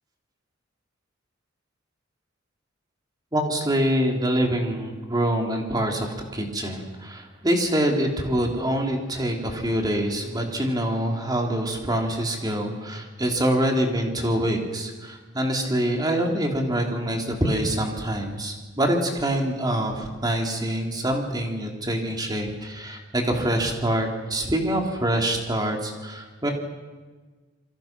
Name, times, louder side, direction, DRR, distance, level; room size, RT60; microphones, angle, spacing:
voice 1, 3.3-26.5, right 1 dB, 20° right, 2 dB, 3.3 m, -25 dB
27.5 x 24.0 x 6.1 m, 1.3 s
head